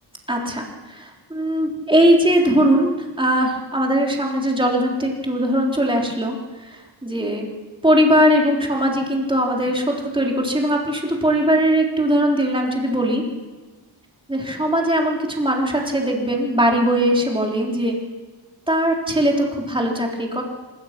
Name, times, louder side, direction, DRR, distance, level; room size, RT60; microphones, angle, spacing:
voice 1, 0.3-6.4 6.7-7.5 7.8-13.2 14.3-18.0 18.7-20.4, equal, 10° right, -1 dB, 3.8 m, -20 dB
25.0 x 22.0 x 6.1 m, 1.3 s
wide cardioid pair, 150°, 45 cm